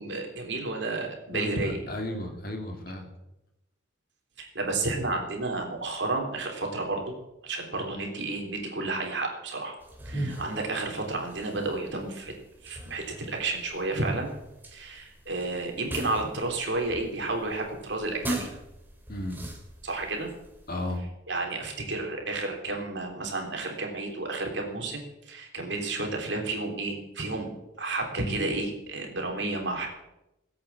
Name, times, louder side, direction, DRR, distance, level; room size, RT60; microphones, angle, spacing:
voice 1, 0.0-1.8 4.4-7.2 7.4-9.8 10.0-12.3 12.6-14.3 14.7-18.5 19.8-20.3 21.3-27.5 27.8-29.9, right 2 dB, 65° right, 2 dB, 3.4 m, -31 dB
voice 2, 1.3-3.1 10.1-10.4 19.1-19.4 20.7-21.0, left 1 dB, 50° left, 4 dB, 2.6 m, -34 dB
sound 1, 9.8-21.0, right 1 dB, 10° right, 2.5 m, -40 dB
18.5 x 8.6 x 7.3 m, 0.91 s
head